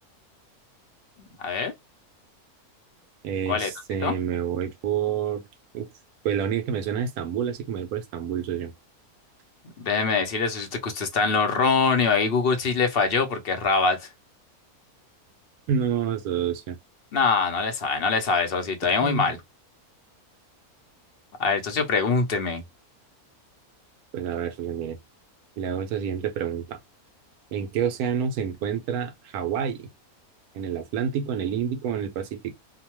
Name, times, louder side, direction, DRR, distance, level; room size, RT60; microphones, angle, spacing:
voice 1, 1.2-1.7 3.5-3.7 4.0-4.1 9.8-14.0 17.1-19.4 21.4-22.6, left 4 dB, 50° left, 0.7 m, -23 dB
voice 2, 3.2-5.4 5.7-5.9 6.2-8.7 15.7-16.8 19.0-19.3 24.1-25.0 25.6-26.8 27.5-29.9 30.5-32.6, right 8 dB, 85° right, 1.1 m, -28 dB
2.9 x 2.1 x 2.9 m
omnidirectional pair, 1.6 m